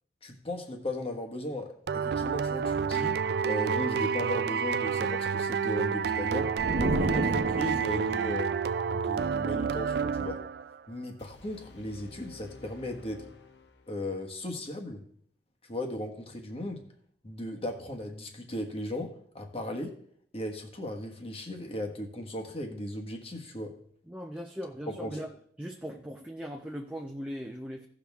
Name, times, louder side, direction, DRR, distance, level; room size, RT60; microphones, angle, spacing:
voice 1, 0.2-3.2 3.4-8.5 8.9-10.4 10.9-13.2 13.9-15.0 15.7-16.8 17.2-20.0 20.3-23.8 24.9-25.2, left 1 dB, 35° left, 3 dB, 1.4 m, -36 dB
sound 1, 1.9-10.8, right 6 dB, 65° right, 0.4 m, -29 dB
sound 2, 6.6-8.2, right 1 dB, 80° right, 0.9 m, -30 dB
sound 3, 11.2-14.2, left 2 dB, 75° left, 1.1 m, -51 dB
voice 2, 24.1-25.3 25.6-27.9, equal, 5° right, 1 dB, 0.7 m, -39 dB
16.0 x 6.2 x 3.5 m, 0.64 s
head